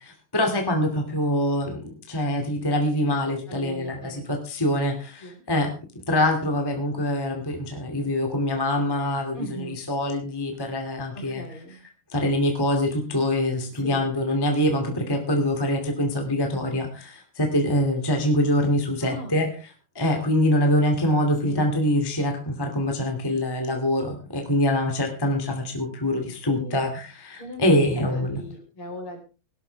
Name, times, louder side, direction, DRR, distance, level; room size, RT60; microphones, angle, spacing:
voice 1, 0.0-5.7 6.1-11.4 12.1-19.5 19.9-28.4, left 1 dB, 10° left, 3 dB, 1.2 m, -24 dB
voice 2, 3.5-4.2 5.2-5.4 9.3-9.8 11.1-11.8 13.8-14.0 19.0-19.4 21.4-21.7 26.4-26.9 27.4-29.2, left 1 dB, 30° left, 2 dB, 4.4 m, -39 dB
19.0 x 12.5 x 3.4 m, 0.33 s
omnidirectional pair, 4.8 m